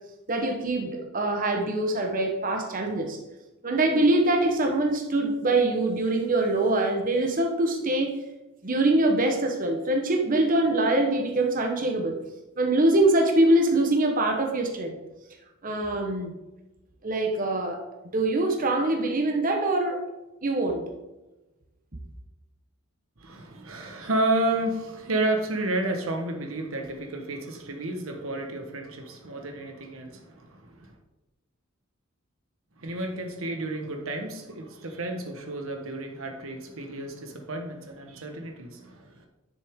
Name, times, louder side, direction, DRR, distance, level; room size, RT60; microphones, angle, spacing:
voice 1, 0.3-3.2 3.6-8.2 8.6-12.2 12.6-15.0 15.6-16.3 17.0-17.8 18.1-20.0 20.4-20.9, right 2 dB, 40° right, 2 dB, 1.0 m, -24 dB
voice 2, 23.2-31.0 32.8-39.3, right 2 dB, 80° right, 4 dB, 1.3 m, -31 dB
10.5 x 6.4 x 3.7 m, 1.0 s
head